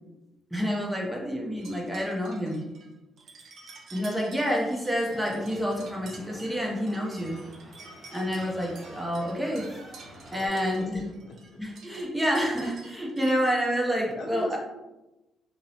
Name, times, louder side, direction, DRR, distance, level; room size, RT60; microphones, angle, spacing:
voice 1, 0.5-2.7 3.9-7.4 8.1-9.7 10.3-11.1 11.6-14.6, equal, 5° right, -2 dB, 0.6 m, -28 dB
sound 1, 1.6-13.4, right 3 dB, 65° right, 0.4 m, -50 dB
sound 2, 5.0-10.5, equal, 30° right, 1.1 m, -48 dB
voice 2, 10.3-10.9 11.3-11.6 14.1-14.6, left 2 dB, 60° left, 0 dB, 0.6 m, -39 dB
2.6 x 2.0 x 2.7 m, 1.0 s
cardioid pair, 90°, 0 cm